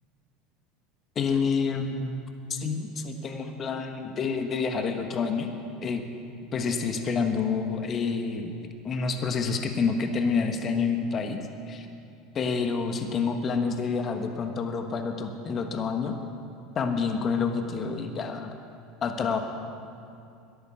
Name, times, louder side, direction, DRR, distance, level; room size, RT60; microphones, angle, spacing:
voice 1, 1.1-2.1 2.5-5.5 5.8-6.0 6.5-11.9 12.3-16.2 16.7-18.5 19.0-19.4, left 5 dB, 35° left, 5 dB, 1.4 m, -28 dB
13.5 x 11.0 x 6.6 m, 2.5 s
hypercardioid pair, 90°, 0 cm